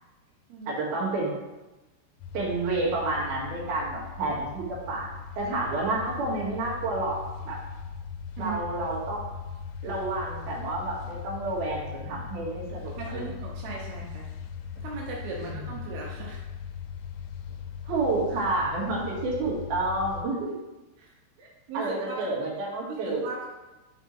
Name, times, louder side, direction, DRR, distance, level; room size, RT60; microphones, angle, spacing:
voice 1, 0.7-1.4 2.3-5.1 5.4-7.2 7.5-7.6 8.4-9.3 9.8-13.3 14.0-14.1 15.4-15.7 17.8-20.6 21.4-21.5 21.7-23.3, right 2 dB, 60° right, -5 dB, 2.2 m, -30 dB
sound 1, 2.2-20.2, left 6 dB, 90° left, 3.2 m, -39 dB
voice 2, 13.0-14.2 14.8-16.4 21.0-21.1 21.7-22.2 22.9-23.5, right 3 dB, 90° right, -3 dB, 2.1 m, -37 dB
7.2 x 4.5 x 4.3 m, 1.1 s
omnidirectional pair, 5.8 m